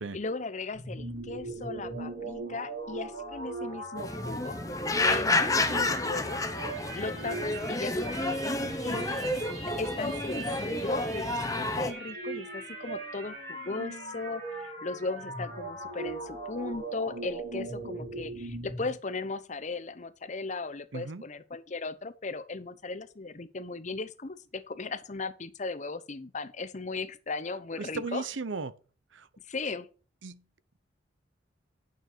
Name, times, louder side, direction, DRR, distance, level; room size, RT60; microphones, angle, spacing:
voice 1, 0.1-4.6 5.0-6.5 6.9-8.2 8.8-9.0 9.3-28.2 29.5-29.9, left 3 dB, 40° left, 0.8 m, -37 dB
sound 1, 0.7-18.9, right 2 dB, 55° right, 4.8 m, -39 dB
sound 2, 4.0-11.9, left 2 dB, 20° left, 1.0 m, -30 dB
voice 2, 8.6-9.0 20.9-21.2 27.8-28.7 29.1-29.3 30.2-30.4, right 4 dB, 85° right, 0.8 m, -36 dB
9.3 x 6.6 x 4.5 m
head